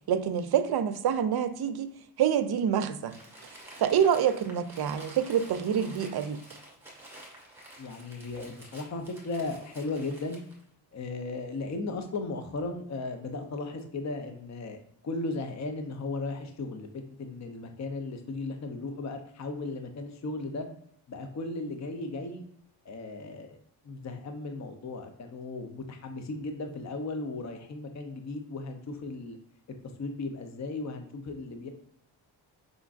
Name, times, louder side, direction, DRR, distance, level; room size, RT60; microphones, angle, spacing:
voice 1, 0.1-3.2 3.8-6.4, right 8 dB, 55° right, 0.5 m, -26 dB
Crumpling crinkling, 3.0-10.6, right 1 dB, 5° right, 1.6 m, -50 dB
voice 2, 7.8-10.4 10.9-20.7 21.1-22.4 22.8-23.6 23.8-29.4 30.0-31.7, left 3 dB, 35° left, 0.6 m, -36 dB
5.1 x 3.5 x 2.5 m
cardioid pair, 80°, 47 cm